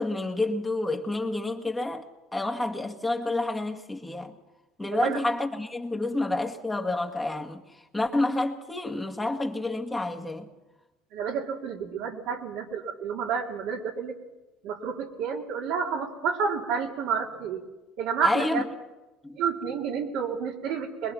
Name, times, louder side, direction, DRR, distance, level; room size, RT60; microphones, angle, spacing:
voice 1, 0.0-2.0 2.3-4.4 4.8-10.5 18.2-18.6 19.2-19.4, left 2 dB, 15° left, 2.0 m, -29 dB
voice 2, 11.1-14.1 14.6-17.6 18.0-18.6 19.3-21.1, right 6 dB, 70° right, 3.0 m, -30 dB
23.0 x 21.0 x 6.0 m
hypercardioid pair, 75°, 0 cm